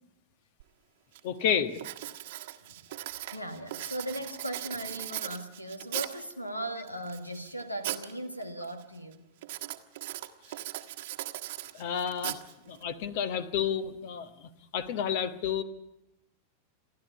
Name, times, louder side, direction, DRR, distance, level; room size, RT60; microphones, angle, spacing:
Writing, 0.6-0.7 1.1-1.4 1.7-6.3 6.9-8.1 8.4-8.8 9.4-12.8, right 15 dB, 55° right, 1.2 m, -39 dB
voice 1, 1.2-1.7 11.7-12.4 12.7-15.6, left 8 dB, 50° left, 11 dB, 1.4 m, -30 dB
voice 2, 3.2-9.2, right 1 dB, 85° left, 9 dB, 1.7 m, -38 dB
29.0 x 11.5 x 8.2 m, 0.91 s
figure-of-eight pair, 90°, 0 cm